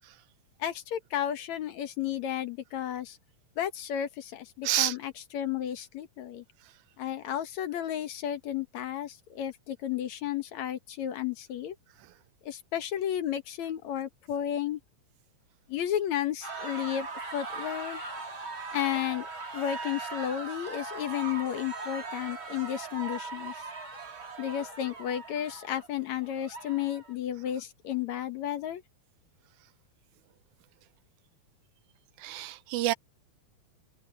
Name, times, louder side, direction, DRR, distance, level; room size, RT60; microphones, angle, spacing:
voice 1, 0.6-3.2 3.6-6.4 7.0-11.7 12.5-14.8 15.7-18.0 18.7-19.3 19.5-23.5 24.4-28.8, left 10 dB, 65° left, 2.5 m, -33 dB
voice 2, 4.6-5.0 32.2-32.9, right 15 dB, 80° right, 2.1 m, -28 dB
sound 1, 16.4-27.1, right 3 dB, 40° right, 4.8 m, -40 dB
omnidirectional pair, 3.5 m